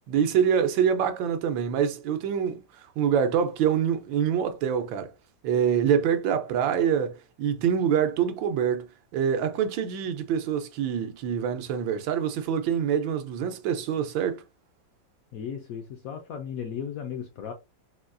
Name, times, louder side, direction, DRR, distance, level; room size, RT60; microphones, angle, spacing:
voice 1, 0.1-5.1 5.4-8.9 9.1-14.4, right 8 dB, 85° right, 1.4 m, -25 dB
voice 2, 15.3-17.5, left 8 dB, 70° left, 0.8 m, -35 dB
4.1 x 2.3 x 2.4 m
omnidirectional pair, 2.0 m